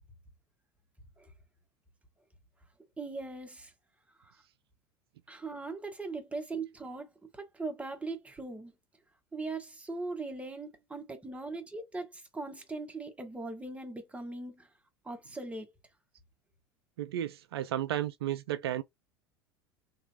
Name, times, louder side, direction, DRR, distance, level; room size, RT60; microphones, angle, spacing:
voice 1, 3.0-3.7 4.2-4.4 5.3-8.7 9.3-14.7 15.0-15.7, right 3 dB, 10° right, 1.2 m, -40 dB
voice 2, 17.0-18.8, right 12 dB, 70° right, 0.4 m, -33 dB
3.1 x 2.8 x 2.8 m
figure-of-eight pair, 75°, 14 cm